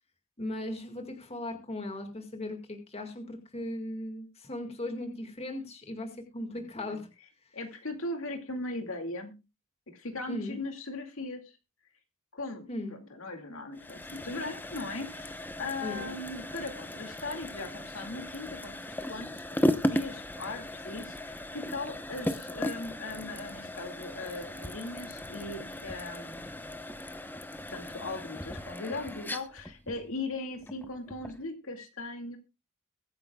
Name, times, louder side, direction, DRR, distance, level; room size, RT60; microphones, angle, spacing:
voice 1, 0.4-7.1 10.3-10.6 12.7-13.0 15.8-16.1, left 1 dB, 30° left, 4 dB, 2.0 m, -38 dB
voice 2, 7.5-9.4 9.9-11.6 12.3-26.8 27.7-32.4, left 2 dB, 70° left, 5 dB, 2.4 m, -39 dB
sound 1, 13.7-31.5, left 1 dB, 10° left, 0.9 m, -36 dB
22.5 x 9.6 x 2.4 m, 0.27 s
head